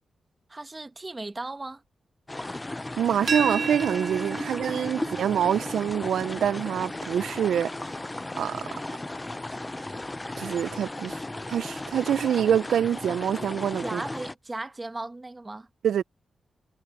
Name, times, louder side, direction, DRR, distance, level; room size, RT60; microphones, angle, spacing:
voice 1, 0.5-1.8 4.4-4.5 13.8-15.7, right 2 dB, 20° right, 1.2 m, -36 dB
sound 1, 2.3-14.3, left 2 dB, 15° left, 0.3 m, -36 dB
voice 2, 3.0-7.7 8.4-8.6 10.4-11.2 11.5-14.0 15.8-16.0, right 9 dB, 90° right, 0.3 m, -26 dB
sound 2, 3.3-9.0, right 5 dB, 40° right, 0.6 m, -35 dB
wide cardioid pair, 130°, 0 cm